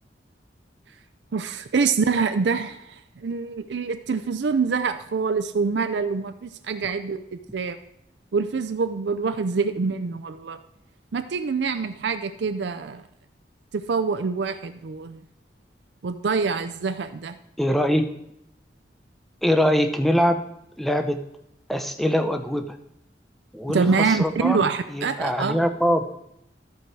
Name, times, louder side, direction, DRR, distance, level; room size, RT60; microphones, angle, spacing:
voice 1, 1.3-2.8 3.2-7.2 7.5-7.8 8.3-10.6 11.1-13.0 13.7-15.2 16.0-17.4 23.7-25.6, right 5 dB, 70° right, 9 dB, 0.5 m, -25 dB
voice 2, 17.6-18.1 19.4-20.4 20.8-21.2 21.7-22.7 23.5-24.7 24.9-26.1, equal, ahead, 6 dB, 0.6 m, -23 dB
13.5 x 4.7 x 4.7 m, 0.79 s
head